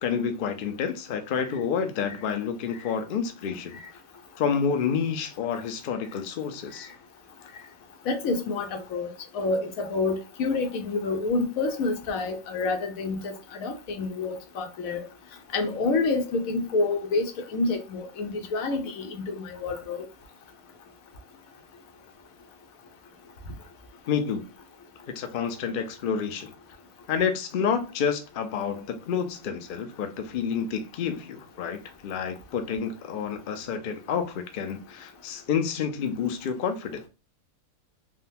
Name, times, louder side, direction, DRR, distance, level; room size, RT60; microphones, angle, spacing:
voice 1, 0.0-3.8 4.4-6.9 24.1-24.5 25.2-26.5 27.1-37.1, left 7 dB, 60° left, 0.5 m, -29 dB
voice 2, 8.1-9.1 9.3-15.0 15.5-20.1, left 3 dB, 75° left, 1.1 m, -28 dB
3.6 x 2.2 x 2.6 m
omnidirectional pair, 1.5 m